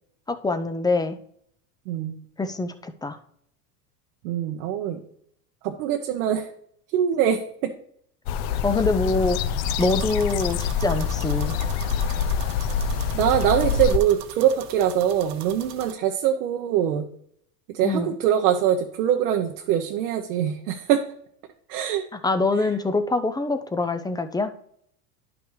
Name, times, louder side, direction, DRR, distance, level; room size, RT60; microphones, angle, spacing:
voice 1, 0.3-1.2 2.4-3.2 8.6-9.4 9.8-11.5 17.8-18.1 22.2-24.5, left 3 dB, 10° left, 9 dB, 0.4 m, -24 dB
voice 2, 1.9-2.2 4.2-5.0 5.6-6.5 6.9-7.7 13.1-17.1 17.7-21.0 21.7-22.0 22.6-22.7, right 10 dB, 75° right, 3 dB, 1.0 m, -23 dB
sound 1, 8.3-14.0, left 7 dB, 65° left, 0.8 m, -26 dB
sound 2, 9.6-15.9, right 10 dB, 45° right, 1.0 m, -42 dB
10.5 x 6.0 x 3.2 m, 0.67 s
supercardioid pair, 100°, 47 cm